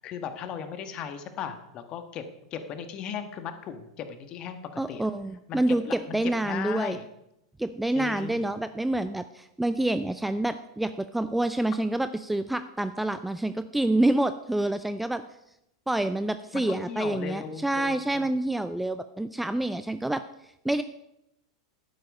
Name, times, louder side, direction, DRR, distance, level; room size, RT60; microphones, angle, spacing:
voice 1, 0.0-2.2 2.5-5.0 5.5-7.0 7.9-8.4 16.5-18.3, left 7 dB, 35° left, 9 dB, 1.5 m, -37 dB
voice 2, 4.8-7.0 7.6-15.2 15.9-20.2 20.6-20.8, right 1 dB, 5° right, 12 dB, 0.4 m, -27 dB
11.5 x 9.5 x 5.3 m, 0.85 s
figure-of-eight pair, 90°, 2 cm